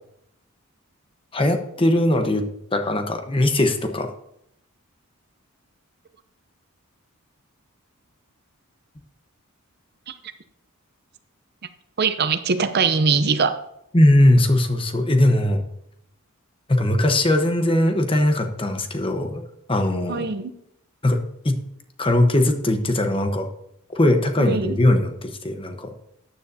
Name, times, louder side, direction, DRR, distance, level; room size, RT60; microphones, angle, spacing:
voice 1, 1.3-2.4 2.7-4.1 13.9-15.6 16.7-19.4 19.7-20.2 21.0-21.6 22.0-23.5 23.9-25.9, left 1 dB, 25° left, 6 dB, 1.0 m, -20 dB
voice 2, 12.0-13.6 20.1-20.5 24.4-24.8, right 5 dB, 45° right, 10 dB, 0.6 m, -22 dB
14.0 x 9.5 x 2.7 m, 0.76 s
head